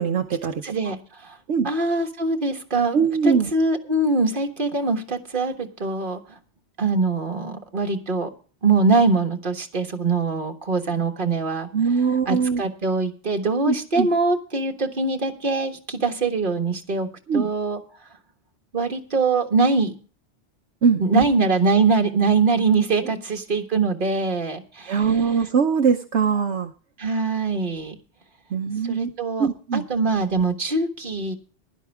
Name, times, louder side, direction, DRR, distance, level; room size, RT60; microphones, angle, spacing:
voice 1, 0.0-0.9 1.5-1.7 2.9-3.5 11.7-12.6 13.7-14.1 17.3-17.5 20.8-21.2 24.9-26.7 28.5-29.1 29.4-29.8, right 6 dB, 75° right, 5 dB, 1.1 m, -22 dB
voice 2, 0.6-1.4 1.6-3.0 3.2-6.2 6.8-8.3 8.6-11.7 12.3-17.8 18.7-20.0 21.0-25.0 27.0-28.0 28.8-31.3, right 3 dB, 45° right, 3 dB, 1.7 m, -23 dB
16.0 x 11.5 x 3.4 m, 0.38 s
omnidirectional pair, 1.2 m